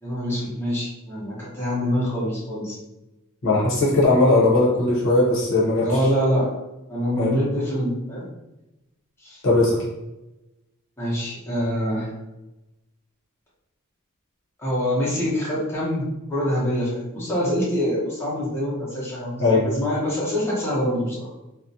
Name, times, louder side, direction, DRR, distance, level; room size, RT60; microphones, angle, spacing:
voice 1, 0.0-2.8 5.8-6.5 6.9-8.3 9.2-9.4 11.0-12.1 14.6-21.3, equal, 10° left, -8 dB, 0.8 m, -25 dB
voice 2, 3.4-5.9 7.2-7.3 9.4-9.8 19.4-19.7, left 2 dB, 60° left, -5 dB, 0.8 m, -18 dB
2.5 x 2.1 x 2.7 m, 0.96 s
head